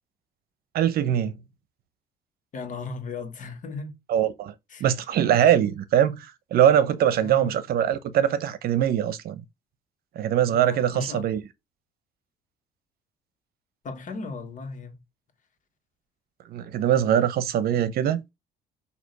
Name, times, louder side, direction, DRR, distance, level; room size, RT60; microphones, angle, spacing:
voice 1, 0.7-1.3 4.1-4.5 4.8-9.4 10.2-11.4 16.5-18.2, right 10 dB, 65° right, 0.8 m, -22 dB
voice 2, 2.5-4.0 4.7-4.9 7.2-7.5 10.5-11.2 13.8-15.0, left 4 dB, 50° left, 1.6 m, -36 dB
6.3 x 2.9 x 5.3 m
cardioid pair, 110°, 17 cm